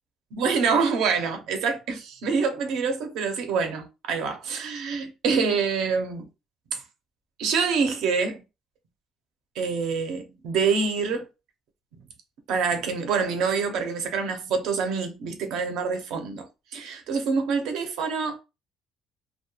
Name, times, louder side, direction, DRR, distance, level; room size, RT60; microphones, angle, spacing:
voice 1, 0.3-6.3 6.7-6.8 7.4-8.4 9.6-11.3 12.5-16.5 16.7-18.4, right 5 dB, 80° right, 0.6 m, -26 dB
2.3 x 2.2 x 2.9 m
cardioid pair, 155°, 0 cm